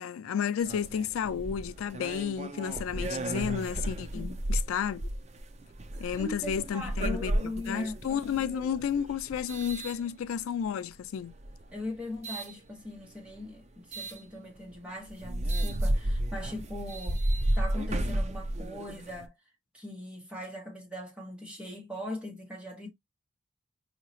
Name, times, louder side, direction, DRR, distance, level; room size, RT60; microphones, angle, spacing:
voice 1, 0.0-5.0 6.0-11.3, left 8 dB, 85° left, 0.3 m, -32 dB
sound 1, 0.6-10.6 11.3-12.5 13.9-14.2 14.7-14.8 15.1-19.3, right 1 dB, 30° right, 0.5 m, -33 dB
voice 2, 6.2-8.0 11.7-17.2 17.5-19.3 19.7-22.9, left 1 dB, 5° right, 1.5 m, -40 dB
4.7 x 2.9 x 2.8 m
head